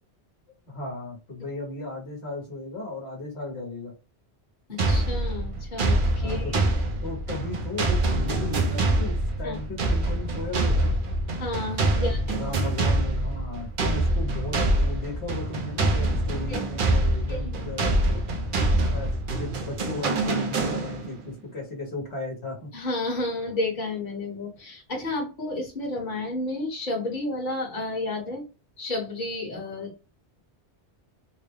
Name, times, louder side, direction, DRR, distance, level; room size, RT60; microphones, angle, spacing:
voice 1, 0.7-3.9 6.2-6.5 7.0-10.9 11.9-18.2 18.9-19.1 19.4-22.7, left 2 dB, 70° left, -1 dB, 1.3 m, -36 dB
voice 2, 4.7-6.6 9.4-9.6 11.4-12.2 16.5-16.6 17.3-17.7 22.7-28.4 28.8-29.9, left 2 dB, 45° left, -2 dB, 1.3 m, -31 dB
sound 1, 4.8-21.2, right 2 dB, 55° right, 0.8 m, -25 dB
3.8 x 2.1 x 3.3 m, 0.32 s
omnidirectional pair, 1.1 m